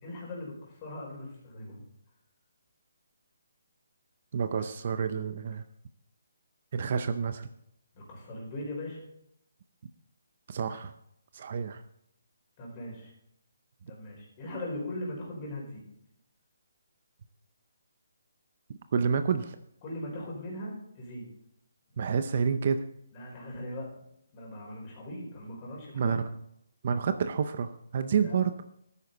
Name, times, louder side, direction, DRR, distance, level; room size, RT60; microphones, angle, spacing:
voice 1, 0.0-1.8 4.6-4.7 7.9-9.0 12.6-13.1 13.9-15.8 19.8-21.3 23.1-23.9 24.3-26.2 28.2-28.3, left 1 dB, 25° left, -2 dB, 4.6 m, -39 dB
voice 2, 4.3-5.6 6.7-7.5 10.5-10.9 11.3-11.8 18.9-19.6 22.0-22.9 25.9-26.3 26.8-28.5, right 6 dB, 40° right, 10 dB, 0.6 m, -29 dB
12.5 x 9.6 x 4.0 m, 0.74 s
hypercardioid pair, 170°, 0 cm